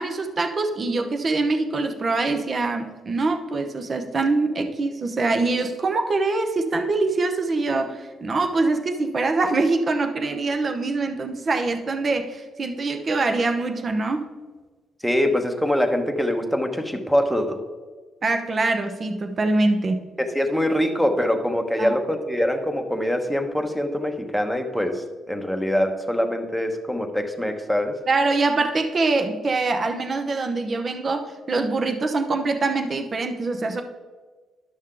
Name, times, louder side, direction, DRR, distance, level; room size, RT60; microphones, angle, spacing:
voice 1, 0.0-14.2 18.2-20.0 21.8-22.0 28.1-33.8, right 3 dB, 40° right, 6 dB, 0.8 m, -24 dB
voice 2, 15.0-17.6 20.2-28.0, equal, ahead, 5 dB, 1.0 m, -24 dB
11.0 x 6.3 x 3.8 m, 1.4 s
cardioid pair, 90°, 0 cm